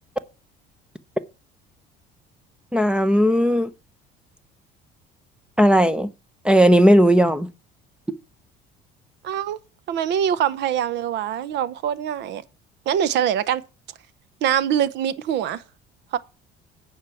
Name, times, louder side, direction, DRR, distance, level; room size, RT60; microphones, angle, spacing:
voice 1, 2.7-3.7 5.6-6.1 6.4-7.5, equal, 5° right, 0.6 m, -16 dB
voice 2, 9.2-9.6 9.9-12.4 12.9-13.6 14.4-15.6 16.1-16.2, right 9 dB, 65° right, 0.9 m, -23 dB
9.3 x 4.8 x 7.0 m
cardioid pair, 105°, 20 cm